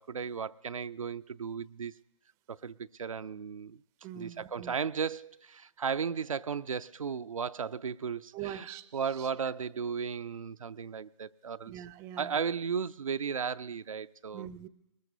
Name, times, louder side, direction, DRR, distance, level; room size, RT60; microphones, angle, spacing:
voice 1, 0.0-2.0 2.5-3.8 4.1-11.7 12.2-14.5, right 6 dB, 90° right, 0.4 m, -35 dB
voice 2, 4.0-4.8 8.3-9.3 11.7-12.4 14.3-14.7, right 11 dB, 15° right, 0.5 m, -43 dB
22.5 x 19.5 x 2.7 m
figure-of-eight pair, 140°, 17 cm